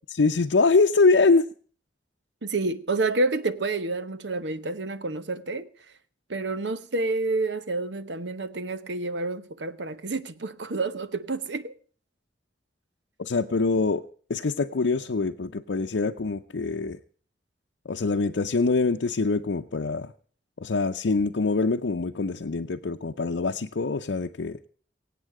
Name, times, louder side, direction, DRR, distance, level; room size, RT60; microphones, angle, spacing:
voice 1, 0.2-1.5 13.2-14.0 14.3-17.0 17.9-20.1 20.6-24.6, left 3 dB, 90° left, 0.6 m, -24 dB
voice 2, 2.4-5.7 6.3-11.7, right 3 dB, 80° right, 1.0 m, -29 dB
24.0 x 8.4 x 4.8 m
head